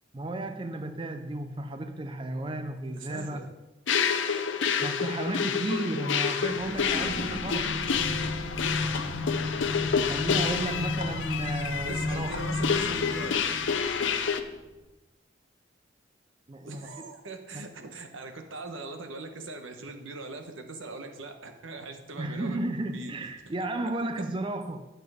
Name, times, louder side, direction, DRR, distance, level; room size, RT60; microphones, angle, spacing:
voice 1, 0.1-3.5 4.8-7.7 10.1-12.4 16.5-17.1 17.5-17.9 22.2-24.9, right 2 dB, 25° right, 7 dB, 0.4 m, -34 dB
voice 2, 3.0-3.5 11.8-13.4 16.6-22.6 22.9-23.1, right 2 dB, 85° right, 5 dB, 1.2 m, -41 dB
sound 1, 3.9-14.4, left 6 dB, 70° left, 0.7 m, -29 dB
sound 2, 6.4-14.6, left 2 dB, 45° right, 2.0 m, -34 dB
9.0 x 6.7 x 4.9 m, 1.0 s
head